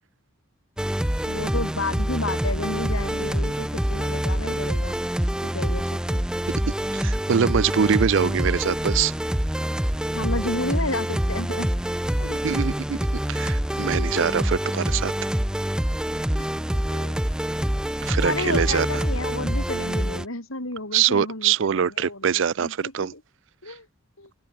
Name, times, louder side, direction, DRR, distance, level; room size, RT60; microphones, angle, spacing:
sound 1, 0.8-20.3, equal, 5° right, 0.4 m, -26 dB
voice 1, 1.2-5.0 5.4-6.2 10.1-11.7 12.2-12.4 13.9-14.1 16.4-16.5 16.9-17.4 18.2-23.2 23.6-23.9 24.2-24.3, left 2 dB, 80° left, 5.7 m, -32 dB
voice 2, 6.7-9.1 12.4-13.0 13.3-15.1 18.0-19.0 20.9-23.1, right 7 dB, 60° right, 0.4 m, -23 dB
head